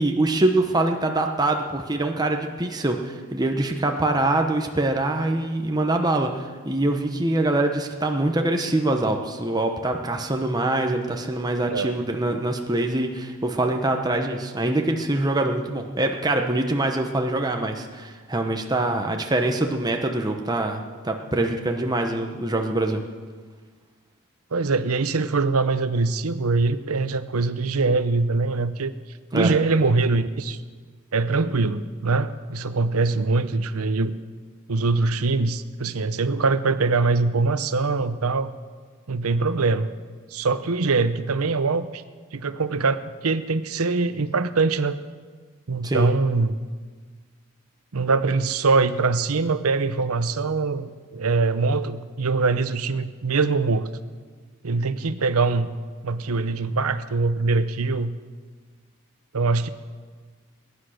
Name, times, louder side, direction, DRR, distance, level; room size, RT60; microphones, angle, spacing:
voice 1, 0.0-23.0 29.3-29.5 45.8-46.1, right 2 dB, 20° right, 3 dB, 1.0 m, -24 dB
voice 2, 24.5-28.9 29.3-30.6 31.1-34.1 34.7-38.5 39.1-39.9 40.3-42.0 42.3-45.0 45.7-46.6 47.9-53.9 54.6-55.8 56.0-58.1 59.3-59.7, right 3 dB, 90° right, 13 dB, 0.8 m, -23 dB
21.0 x 10.0 x 6.5 m, 1.5 s
head